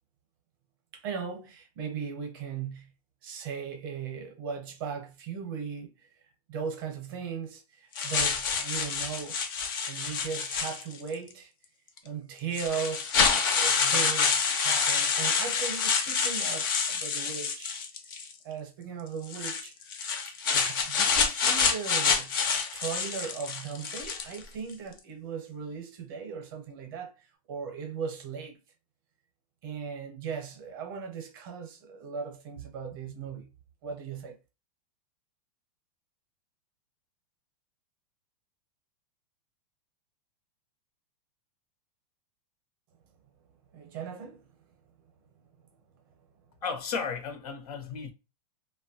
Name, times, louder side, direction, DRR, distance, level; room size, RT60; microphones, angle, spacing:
voice 1, 0.9-2.9 3.2-6.1 6.5-9.4 9.9-11.5 12.0-13.1 13.5-17.8 18.4-19.8 20.5-22.3 22.7-28.6 29.6-33.5 33.8-34.4 43.7-44.4, right 6 dB, 35° right, 0.6 m, -38 dB
sound 1, 8.0-11.1 12.0-12.1 12.5-18.3 19.2-24.4, left 5 dB, 35° left, 0.4 m, -27 dB
voice 2, 46.6-48.1, left 5 dB, 80° left, 0.7 m, -34 dB
2.9 x 2.2 x 2.7 m
supercardioid pair, 180°, 19 cm